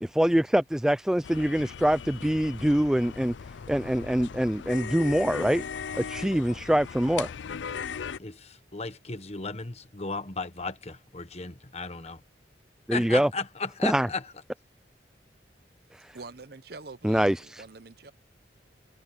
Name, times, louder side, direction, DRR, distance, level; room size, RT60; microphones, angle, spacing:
voice 1, 0.0-3.3 3.7-5.6 6.0-7.3 12.9-13.3 13.8-14.1 15.9-16.2 17.0-17.6, equal, 5° right, 0.3 m, -24 dB
sound 1, 1.2-8.2, left 6 dB, 80° left, 0.5 m, -38 dB
voice 2, 8.2-12.2 12.9-14.2, left 4 dB, 35° left, 1.3 m, -35 dB
voice 3, 16.1-18.1, right 3 dB, 55° right, 0.9 m, -45 dB
head